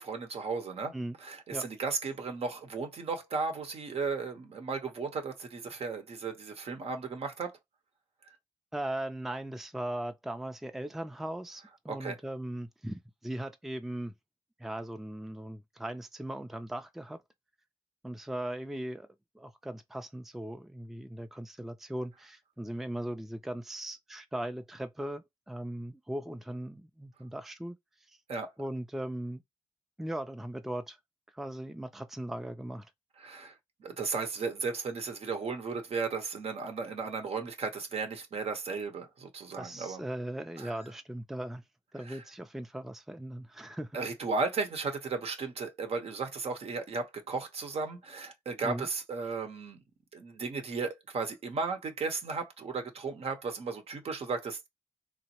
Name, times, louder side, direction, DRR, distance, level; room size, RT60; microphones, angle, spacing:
voice 1, 0.0-7.5 11.9-12.2 28.3-28.5 33.2-33.5 33.8-40.0 40.6-40.7 42.0-42.2 43.9-49.8 50.1-54.7, right 4 dB, 65° right, 0.7 m, -35 dB
voice 2, 8.7-14.1 14.6-17.2 18.0-19.1 19.3-27.8 28.6-29.4 30.0-31.0 31.3-32.9 39.6-41.6 41.9-44.0 48.6-48.9, right 1 dB, 5° right, 0.4 m, -38 dB
3.0 x 2.0 x 2.8 m
cardioid pair, 60°, 11 cm